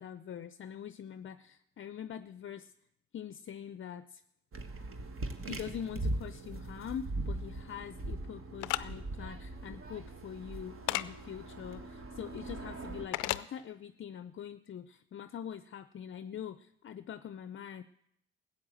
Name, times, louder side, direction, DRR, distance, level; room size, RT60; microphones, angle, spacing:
voice 1, 0.0-2.7 3.1-4.2 5.4-17.8, left 9 dB, 40° left, 13 dB, 0.6 m, -44 dB
sound 1, 4.5-13.1, right 2 dB, 45° right, 1.7 m, -40 dB
sound 2, 8.6-8.8 10.9-11.1 13.1-13.4, left 18 dB, 90° left, 0.5 m, -31 dB
14.0 x 8.5 x 7.6 m, 0.79 s
supercardioid pair, 65°, 30 cm